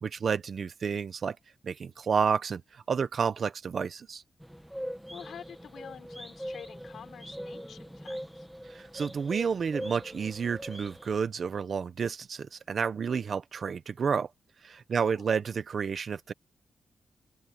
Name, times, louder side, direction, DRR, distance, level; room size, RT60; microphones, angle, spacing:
voice 1, 0.0-1.4 1.6-4.2 8.7-14.3 14.6-16.3, right 6 dB, 50° right, 0.9 m, -30 dB
sound 1, 4.4-11.2, equal, ahead, 1.7 m, -42 dB
voice 2, 4.8-8.5 14.9-15.3, left 8 dB, 75° left, 6.1 m, -48 dB
open air
wide cardioid pair, 160°, 0 cm